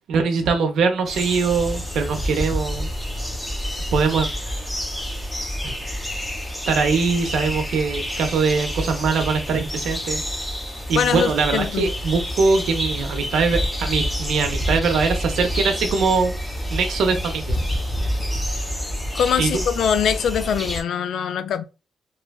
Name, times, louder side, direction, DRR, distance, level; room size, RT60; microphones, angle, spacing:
voice 1, 0.1-2.9 3.9-4.3 5.6-5.7 6.7-10.2 10.9-16.3 16.7-17.6 19.4-19.5, right 4 dB, 80° right, 0.6 m, -22 dB
sound 1, 1.1-20.8, equal, 10° left, 0.7 m, -28 dB
voice 2, 10.9-11.9 19.1-21.6, left 8 dB, 70° left, 0.3 m, -22 dB
3.1 x 2.2 x 2.3 m
cardioid pair, 140°, 0 cm